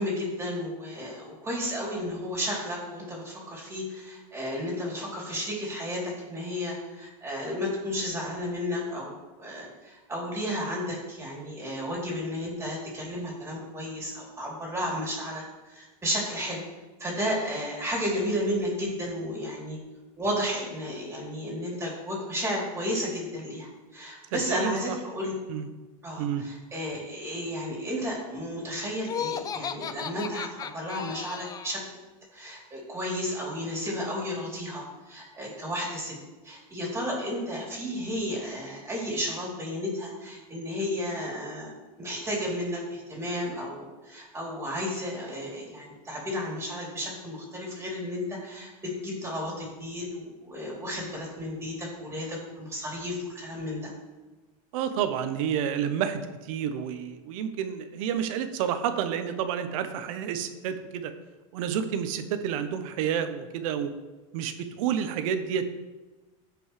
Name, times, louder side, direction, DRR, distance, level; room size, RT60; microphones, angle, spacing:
voice 1, 0.0-15.4 15.7-16.6 17.0-19.8 20.2-25.3 26.0-31.8 32.3-36.1 36.4-41.7 42.0-53.9, equal, 15° right, -3 dB, 3.2 m, -33 dB
voice 2, 24.3-25.0 25.5-25.7 26.2-26.4 54.7-61.1 61.5-63.9 64.3-65.8, right 8 dB, 75° right, 9 dB, 0.9 m, -30 dB
Laughter, 29.0-31.9, left 7 dB, 20° left, 0.3 m, -35 dB
15.0 x 5.2 x 3.3 m, 1.2 s
supercardioid pair, 140°, 17 cm